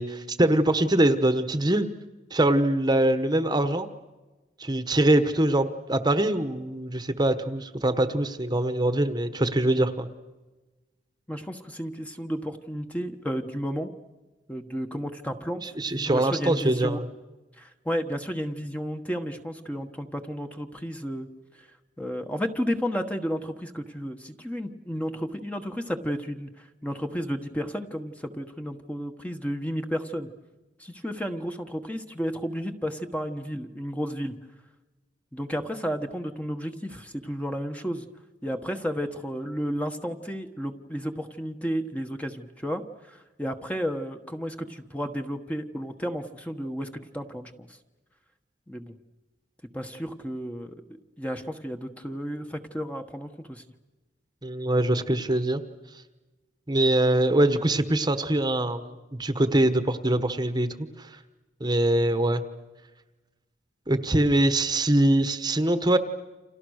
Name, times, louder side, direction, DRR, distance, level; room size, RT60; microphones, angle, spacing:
voice 1, 0.0-1.9 2.3-3.9 4.6-10.1 15.6-17.1 54.4-55.6 56.7-60.7 61.0-61.2 61.6-62.4 63.9-66.0, right 1 dB, 25° right, 10 dB, 1.2 m, -23 dB
voice 2, 11.3-13.9 14.5-15.6 16.0-17.0 17.6-21.3 21.5-21.7 22.0-30.3 30.8-34.3 35.3-38.1 38.4-42.8 43.1-47.7 48.7-48.9 49.7-50.7 51.2-53.6, equal, 10° left, 6 dB, 1.3 m, -32 dB
29.5 x 27.5 x 6.5 m, 1.2 s
head